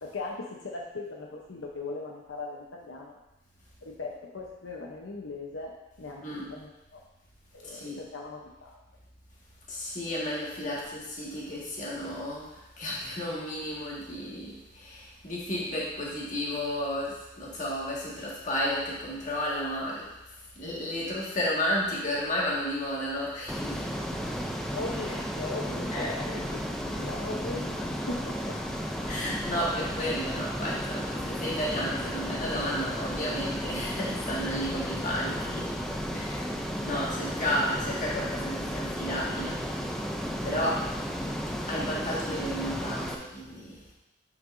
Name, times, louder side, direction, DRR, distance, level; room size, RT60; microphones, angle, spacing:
voice 1, 0.0-3.2 3.8-7.0 7.5-8.8 10.6-10.7 24.7-26.6 27.0-28.6 29.5-29.6, left 3 dB, 80° left, -1 dB, 0.8 m, -39 dB
voice 2, 7.6-8.0 9.7-20.1 20.6-23.9 25.9-26.1 29.1-35.7 36.1-36.4 36.8-39.6 40.4-40.9 41.7-43.8, equal, 40° left, -5 dB, 1.8 m, -32 dB
Ocean, 23.5-43.1, equal, ahead, 0.4 m, -33 dB
9.4 x 5.9 x 2.6 m, 0.97 s
head